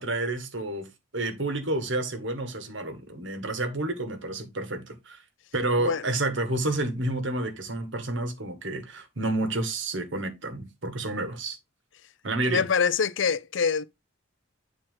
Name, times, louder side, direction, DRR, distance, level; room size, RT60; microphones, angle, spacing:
voice 1, 0.0-5.2 5.5-11.6 12.2-12.7, right 2 dB, 70° right, 1.8 m, -30 dB
voice 2, 12.5-13.8, left 6 dB, 70° left, 0.5 m, -24 dB
9.2 x 4.4 x 3.7 m
head